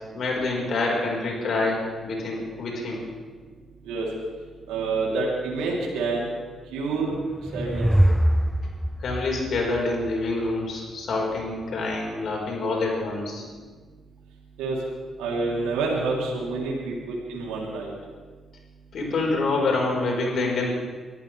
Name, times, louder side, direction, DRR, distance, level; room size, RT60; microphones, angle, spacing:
voice 1, 0.1-3.0 9.0-13.4 18.9-20.7, left 3 dB, 65° left, -1 dB, 4.7 m, -26 dB
voice 2, 4.7-6.3 6.7-7.1 7.5-7.9 14.6-14.8 15.2-17.9, right 3 dB, 85° right, -3 dB, 3.4 m, -27 dB
sound 1, 7.1-10.5, right 1 dB, 5° right, 0.5 m, -24 dB
24.0 x 14.0 x 3.4 m, 1.5 s
hypercardioid pair, 50°, 0 cm